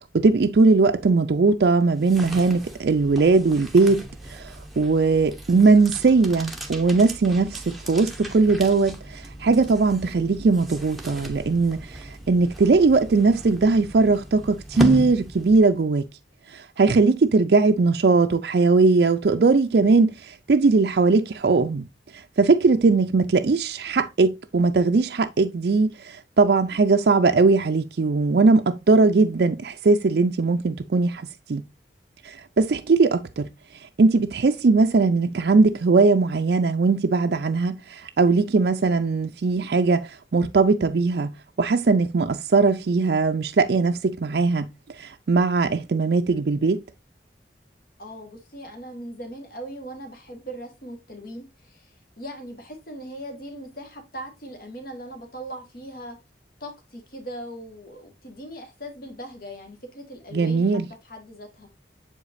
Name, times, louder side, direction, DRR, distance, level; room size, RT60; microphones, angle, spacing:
voice 1, 0.0-4.5 4.8-16.1 16.5-21.9 22.4-31.6 32.2-33.5 34.0-44.7 45.0-46.8 60.3-60.8, right 3 dB, 65° right, 0.4 m, -20 dB
sound 1, 1.8-15.9, equal, ahead, 0.8 m, -35 dB
voice 2, 48.0-56.2 56.6-61.7, equal, 55° left, 1.6 m, -39 dB
7.2 x 4.9 x 2.6 m
head